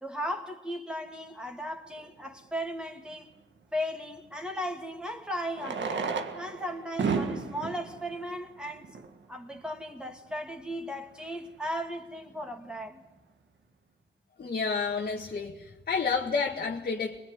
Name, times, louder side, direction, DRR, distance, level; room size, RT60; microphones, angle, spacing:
voice 1, 0.0-3.3 3.7-6.1 6.3-9.0 9.3-13.0, equal, 5° right, 2.6 m, -36 dB
Fireworks, 2.0-2.1 4.3-4.4 5.5-9.3 10.0-10.1 10.3-10.4 10.6-10.7 11.2-11.5, right 5 dB, 65° right, 1.9 m, -33 dB
voice 2, 14.4-17.2, left 5 dB, 50° left, 1.8 m, -30 dB
22.0 x 21.5 x 9.7 m
cardioid pair, 75°, 20 cm